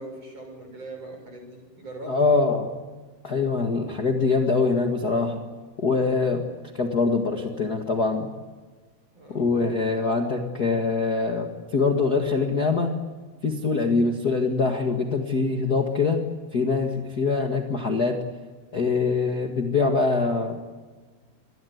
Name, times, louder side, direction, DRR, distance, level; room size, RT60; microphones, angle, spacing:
voice 1, 0.0-2.3 9.1-9.5, right 2 dB, 35° right, 4 dB, 7.7 m, -40 dB
voice 2, 2.1-2.7 3.2-5.4 5.8-6.4 6.7-8.3 9.3-12.9 13.4-16.2 16.5-18.2 18.7-20.6, left 4 dB, 55° left, 3 dB, 1.0 m, -23 dB
26.0 x 20.0 x 9.5 m, 1.4 s
omnidirectional pair, 5.0 m